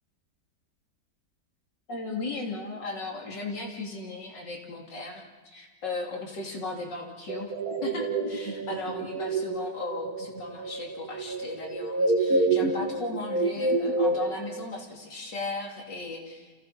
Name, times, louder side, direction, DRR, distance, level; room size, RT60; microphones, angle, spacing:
voice 1, 1.9-7.5 7.8-16.5, left 3 dB, 80° left, 0 dB, 3.6 m, -36 dB
sound 1, 7.3-14.7, right 2 dB, 55° right, 2.4 m, -28 dB
30.0 x 27.5 x 4.4 m, 1.4 s
omnidirectional pair, 1.9 m